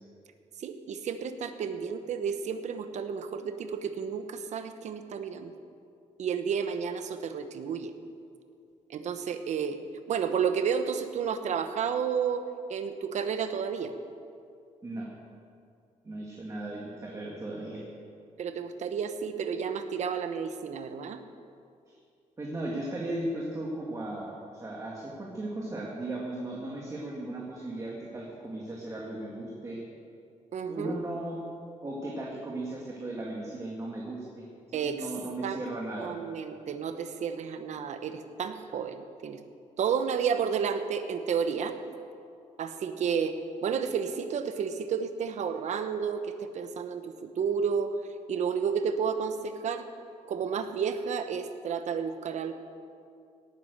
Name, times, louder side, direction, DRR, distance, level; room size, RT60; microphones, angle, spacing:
voice 1, 0.6-5.5 6.2-7.9 8.9-9.8 10.1-13.9 18.4-21.2 30.5-31.0 34.7-35.1 35.4-35.6 36.0-39.4 39.8-41.8 42.6-48.0 48.3-49.9 50.3-52.5, right 6 dB, 65° right, 9 dB, 1.1 m, -31 dB
voice 2, 16.0-17.8 21.9-22.0 22.4-29.8 30.7-31.4 31.8-34.5 34.7-36.1, right 1 dB, 25° right, -3 dB, 2.1 m, -36 dB
17.5 x 9.8 x 6.6 m, 2.4 s
cardioid pair, 125°, 13 cm